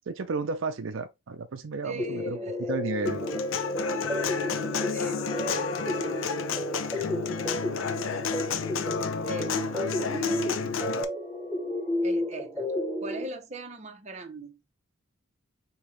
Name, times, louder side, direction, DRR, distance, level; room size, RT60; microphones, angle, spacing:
voice 1, 0.1-2.4 2.7-3.2 7.0-7.1, right 4 dB, 75° right, 0.5 m, -32 dB
voice 2, 1.8-2.7 4.9-6.2 9.3-10.8 12.0-12.7 13.0-14.6, right 1 dB, 35° right, 0.9 m, -40 dB
sound 1, 2.0-13.2, left 1 dB, ahead, 0.7 m, -32 dB
Human voice / Acoustic guitar, 3.1-11.0, left 5 dB, 80° left, 0.6 m, -31 dB
Wind instrument woodwind instrument, 5.0-12.0, left 3 dB, 35° left, 0.4 m, -47 dB
5.3 x 2.9 x 3.1 m
head